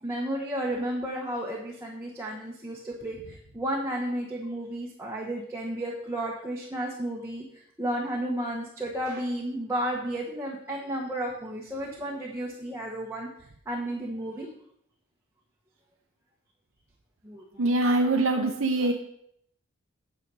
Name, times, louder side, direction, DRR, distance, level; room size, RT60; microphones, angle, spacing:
voice 1, 0.0-7.4 7.8-13.3 13.7-14.5 17.2-17.4 18.1-18.2, right 1 dB, 10° right, -3 dB, 1.3 m, -32 dB
voice 2, 17.6-18.9, right 2 dB, 70° right, 1 dB, 0.9 m, -23 dB
9.3 x 7.6 x 5.5 m, 0.70 s
head